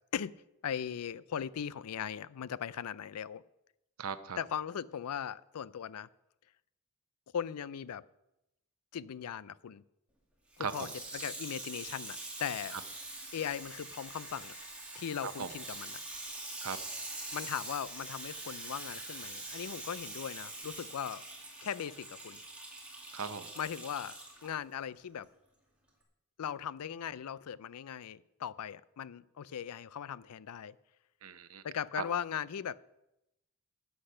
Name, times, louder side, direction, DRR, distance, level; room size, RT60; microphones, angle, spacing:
voice 1, 0.6-3.4 4.4-6.1 7.3-8.0 8.9-9.8 10.6-10.9 11.1-12.8 13.3-14.6 14.9-16.0 17.3-21.2 21.6-22.4 23.6-25.3 26.4-30.8 31.6-32.8, left 8 dB, 85° left, 19 dB, 0.4 m, -39 dB
voice 2, 4.0-4.4 10.6-10.9 12.7-12.8 15.2-15.5 16.6-16.8 23.1-23.5 31.2-31.6 31.9-32.0, right 6 dB, 75° right, 11 dB, 0.8 m, -38 dB
Water tap faucet / Sink (filling or washing), 10.5-24.5 25.2-25.3, right 2 dB, 5° right, 2.1 m, -44 dB
13.0 x 8.0 x 5.6 m, 0.89 s
head